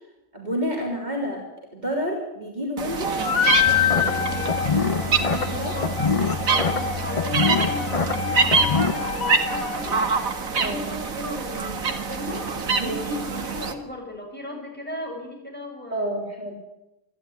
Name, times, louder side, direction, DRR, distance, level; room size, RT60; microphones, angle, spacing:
voice 1, 0.3-1.4 1.7-3.1 3.6-4.3 5.1-5.7 6.5-6.7 10.6-10.9 12.8-13.0 15.9-16.5, equal, 30° right, -1 dB, 3.7 m, -30 dB
sound 1, 2.8-13.7, right 4 dB, 70° right, 2.1 m, -26 dB
voice 2, 3.1-3.4 4.1-4.6 5.5-5.9 6.4-10.0 10.5-12.5 12.8-16.2, left 1 dB, 5° left, 0 dB, 6.4 m, -36 dB
sound 2, 3.2-10.2, left 9 dB, 75° left, 1.5 m, -27 dB
sound 3, 3.7-8.9, left 5 dB, 30° left, 0.7 m, -26 dB
28.0 x 12.0 x 9.3 m, 0.93 s
omnidirectional pair, 1.5 m